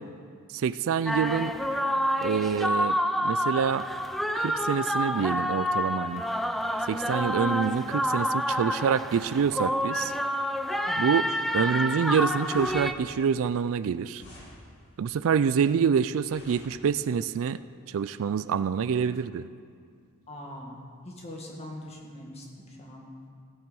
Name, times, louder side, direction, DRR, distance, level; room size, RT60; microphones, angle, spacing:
voice 1, 0.5-1.5 2.2-3.9 4.3-6.2 6.9-10.1 11.0-11.3 11.5-14.2 15.0-17.6 17.9-19.5, right 7 dB, 65° right, 14 dB, 0.4 m, -26 dB
sound 1, 1.1-12.9, equal, ahead, 0.4 m, -28 dB
sound 2, 12.3-17.3, left 1 dB, 50° left, 2.4 m, -52 dB
voice 2, 20.3-20.8 21.1-23.1, left 1 dB, 30° left, -1 dB, 2.0 m, -42 dB
17.0 x 7.8 x 5.4 m, 2.2 s
head